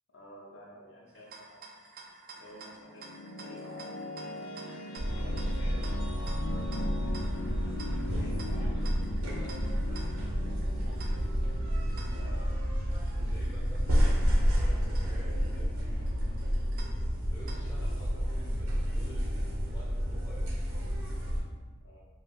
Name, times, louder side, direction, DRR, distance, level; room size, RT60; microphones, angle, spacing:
voice 1, 0.1-1.6 2.3-3.9 5.0-6.2 6.5-7.1 8.1-8.7 12.1-12.4 13.8-14.1 17.8-18.2 21.8-22.1, equal, 60° left, -3 dB, 0.7 m, -52 dB
sound 1, 1.1-18.0, right 3 dB, 45° right, 0.3 m, -52 dB
sound 2, 2.5-13.5, left 1 dB, 85° left, 0.3 m, -41 dB
sound 3, 5.0-21.4, equal, 85° right, 0.8 m, -30 dB
voice 2, 8.5-11.3 13.1-16.2 16.5-16.6 17.3-20.8, equal, 15° left, -8 dB, 0.5 m, -52 dB
2.5 x 2.3 x 3.6 m, 1.3 s
head